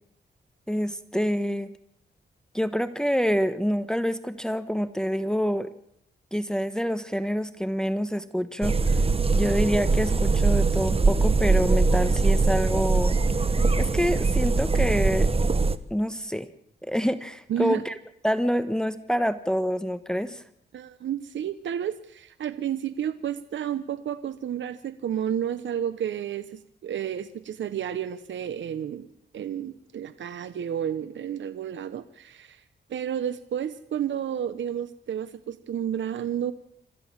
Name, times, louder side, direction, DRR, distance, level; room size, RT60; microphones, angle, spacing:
voice 1, 0.7-1.7 2.5-5.7 6.3-8.8 9.3-13.2 13.8-15.3 15.9-16.5 16.8-17.9 18.2-20.4, equal, 5° left, 11 dB, 1.2 m, -26 dB
sound 1, 8.6-15.8, right 3 dB, 30° right, 1.2 m, -22 dB
voice 2, 17.5-17.8 20.7-29.1 29.3-32.6 32.9-36.5, right 9 dB, 75° right, 13 dB, 0.9 m, -31 dB
27.0 x 13.5 x 7.3 m, 0.74 s
cardioid pair, 70°, 19 cm